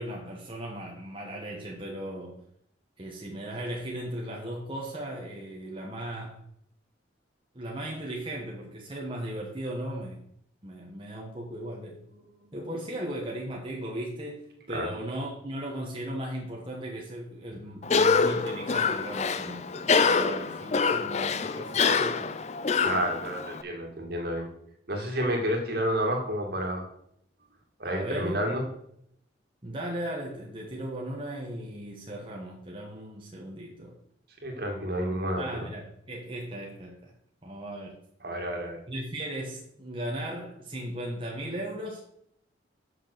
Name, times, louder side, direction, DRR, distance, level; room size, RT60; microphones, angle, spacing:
voice 1, 0.0-2.4 3.0-6.4 7.5-10.2 10.6-12.0 12.5-22.3 27.8-28.5 29.6-34.0 35.1-37.1 37.4-38.0 38.9-42.1, right 1 dB, 25° right, -2 dB, 1.2 m, -37 dB
Cough, 17.8-23.6, left 5 dB, 35° left, 0.5 m, -26 dB
voice 2, 22.8-24.5 24.9-26.8 27.8-28.6 34.4-35.4 38.2-38.8, equal, 55° right, 2 dB, 2.1 m, -30 dB
6.7 x 6.2 x 6.5 m, 0.71 s
head